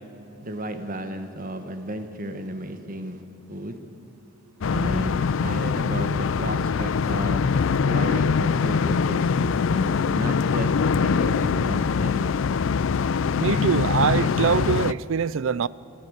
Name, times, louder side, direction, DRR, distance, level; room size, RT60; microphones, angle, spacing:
voice 1, 0.4-3.2 3.5-3.8 4.7-7.6 7.8-10.7 11.0-12.3, right 1 dB, 40° right, 1.2 m, -33 dB
sound 1, 4.6-14.9, left 5 dB, 60° left, 0.4 m, -23 dB
voice 2, 13.4-15.7, right 6 dB, 60° right, 0.4 m, -23 dB
26.5 x 10.0 x 9.6 m
head